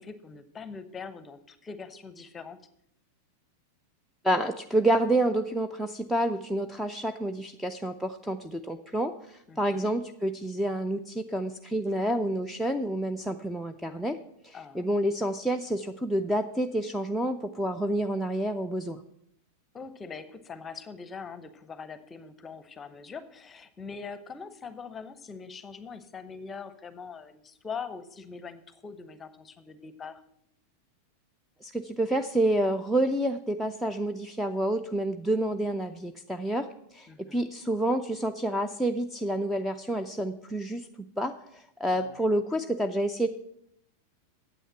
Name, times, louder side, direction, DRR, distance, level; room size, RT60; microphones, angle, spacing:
voice 1, 0.0-2.6 9.5-9.9 14.5-14.9 19.7-30.2 37.1-37.5 41.9-42.2, left 5 dB, 20° left, 13 dB, 0.8 m, -42 dB
voice 2, 4.2-14.2 14.4-19.0 31.6-36.7 36.9-40.9 41.2-43.3, right 1 dB, ahead, 7 dB, 0.5 m, -28 dB
9.1 x 8.0 x 5.6 m, 0.74 s
figure-of-eight pair, 90°, 0 cm